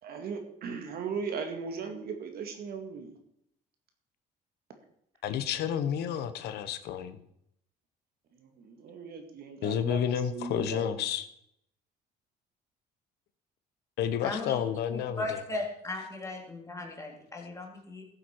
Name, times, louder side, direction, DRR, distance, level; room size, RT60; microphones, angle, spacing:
voice 1, 0.0-3.1 8.3-11.0, right 5 dB, 65° right, 5 dB, 2.1 m, -38 dB
voice 2, 5.2-7.2 9.6-11.3 14.0-15.4, left 9 dB, 80° left, 11 dB, 1.0 m, -30 dB
voice 3, 14.2-14.6 14.9-18.0, left 2 dB, 20° left, 1 dB, 2.9 m, -37 dB
15.0 x 7.9 x 4.6 m, 0.74 s
cardioid pair, 110°, 17 cm